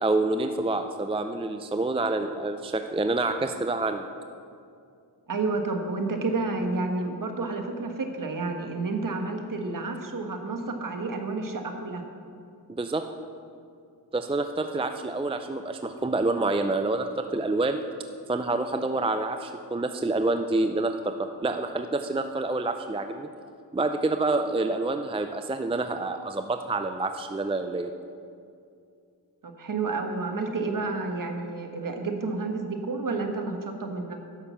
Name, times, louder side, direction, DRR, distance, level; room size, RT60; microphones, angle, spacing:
voice 1, 0.0-4.1 12.8-13.0 14.1-17.8 18.3-23.3 23.7-27.9, right 2 dB, 15° right, 7 dB, 0.5 m, -27 dB
voice 2, 5.3-12.0 29.4-34.2, right 3 dB, 50° right, 4 dB, 1.5 m, -30 dB
10.5 x 6.7 x 7.1 m, 2.4 s
cardioid pair, 65°, 42 cm